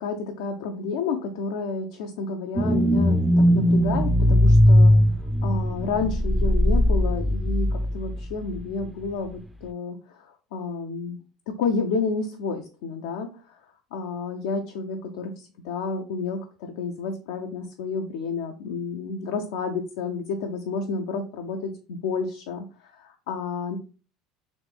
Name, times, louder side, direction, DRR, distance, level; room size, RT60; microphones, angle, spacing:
voice 1, 0.0-4.9 5.4-11.2 11.5-13.6 13.9-23.8, left 4 dB, 70° left, 3 dB, 0.4 m, -30 dB
sound 1, 2.6-8.2 8.6-8.7, equal, 5° right, 0.5 m, -19 dB
3.1 x 3.1 x 3.4 m, 0.35 s
hypercardioid pair, 70°, 0 cm